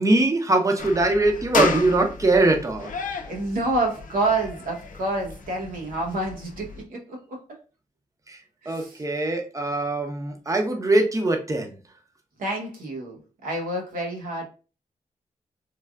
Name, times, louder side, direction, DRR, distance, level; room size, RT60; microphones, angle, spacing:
voice 1, 0.0-2.9 8.3-8.4 8.7-11.8, right 2 dB, 25° right, 0.7 m, -22 dB
sound 1, 0.8-6.8, left 4 dB, 70° left, 0.6 m, -32 dB
voice 2, 3.2-7.4 8.6-9.0 12.4-14.4, right 2 dB, 90° right, 0.8 m, -28 dB
3.2 x 2.3 x 2.3 m
cardioid pair, 55°, 14 cm